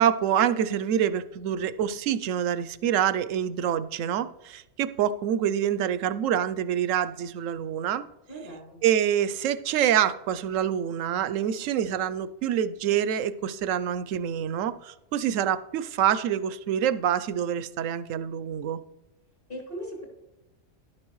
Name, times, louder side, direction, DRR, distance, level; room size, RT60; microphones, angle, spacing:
voice 1, 0.0-8.0 8.8-18.8, right 9 dB, 85° right, 14 dB, 1.0 m, -26 dB
voice 2, 8.3-8.8 19.5-20.0, right 1 dB, 45° left, -3 dB, 3.3 m, -38 dB
12.0 x 10.5 x 3.1 m, 0.91 s
omnidirectional pair, 1.3 m